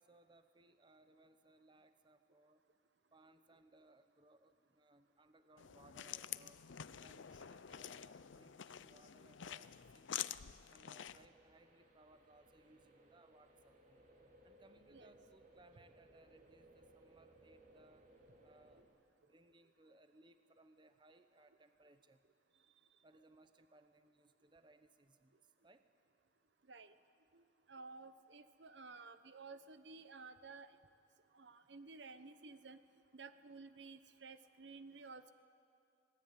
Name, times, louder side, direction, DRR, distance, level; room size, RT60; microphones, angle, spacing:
voice 1, 0.0-2.6 3.1-6.6 7.0-10.3 10.7-14.0 14.4-18.1 18.4-18.9 19.2-22.2 23.0-25.9, right 2 dB, 25° right, 10 dB, 0.8 m, -67 dB
sound 1, 5.6-11.3, left 10 dB, 80° left, 0.6 m, -48 dB
sound 2, 11.0-18.8, right 1 dB, 45° right, 3.3 m, -65 dB
voice 2, 27.3-30.7 31.3-32.8 33.1-35.3, right 4 dB, 65° right, 11 dB, 1.0 m, -54 dB
26.5 x 18.0 x 9.1 m, 2.4 s
head